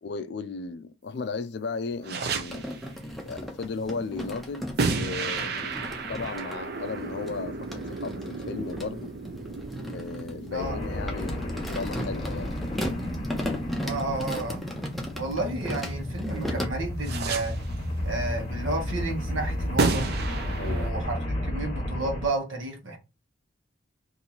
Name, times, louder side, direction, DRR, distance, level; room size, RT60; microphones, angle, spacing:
voice 1, 0.0-2.7 3.3-5.8 6.1-9.1 9.8-12.5 20.6-20.9, left 4 dB, 55° left, 0.4 m, -35 dB
sound 1, 2.0-2.9 4.8-15.7 17.0-17.8 19.8-20.9, right 4 dB, 50° right, 0.5 m, -33 dB
sound 2, 2.4-6.6 7.3-16.6, equal, ahead, 0.6 m, -36 dB
sound 3, 10.6-22.3, left 1 dB, 30° left, 0.9 m, -32 dB
voice 2, 13.8-14.6 15.1-17.6 18.0-20.1 20.6-23.0, right 2 dB, 80° right, 1.1 m, -31 dB
2.9 x 2.6 x 3.9 m
head